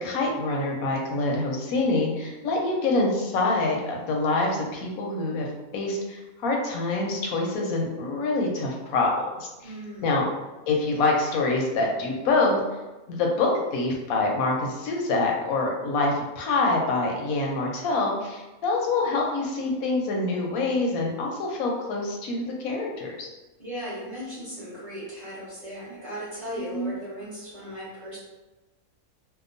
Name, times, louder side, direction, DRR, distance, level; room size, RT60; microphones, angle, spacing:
voice 1, 0.0-5.5 5.7-9.7 10.0-10.2 10.7-12.6 13.1-23.3 26.7-26.9, left 3 dB, 85° left, 0 dB, 1.0 m, -26 dB
voice 2, 9.6-10.1 23.6-28.2, equal, 30° right, -10 dB, 1.0 m, -37 dB
2.8 x 2.2 x 2.5 m, 1.1 s
omnidirectional pair, 1.5 m